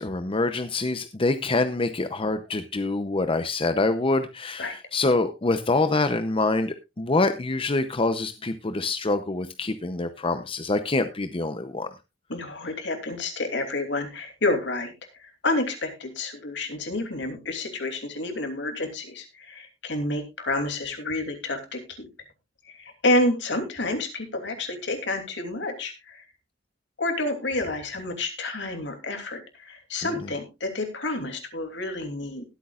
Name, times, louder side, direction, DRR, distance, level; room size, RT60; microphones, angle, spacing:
voice 1, 0.0-11.9 30.2-30.3, left 3 dB, 30° left, 9 dB, 0.7 m, -25 dB
voice 2, 12.3-14.9 15.2-22.1 22.7-26.2 27.0-32.4, left 2 dB, 70° left, 5 dB, 2.9 m, -29 dB
20.5 x 8.4 x 2.4 m, 0.25 s
head